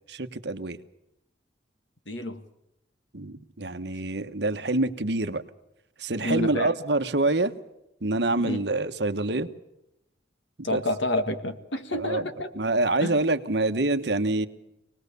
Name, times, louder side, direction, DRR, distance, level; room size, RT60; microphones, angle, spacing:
voice 1, 0.1-0.8 3.1-5.4 6.0-7.5 8.0-9.5 10.6-10.8 11.9-12.3 12.5-14.5, right 2 dB, 60° right, 9 dB, 1.2 m, -26 dB
voice 2, 2.1-2.4 6.2-6.7 8.4-8.6 10.6-12.5 13.0-13.2, left 1 dB, 80° left, 8 dB, 2.0 m, -29 dB
25.5 x 19.5 x 6.9 m, 0.87 s
head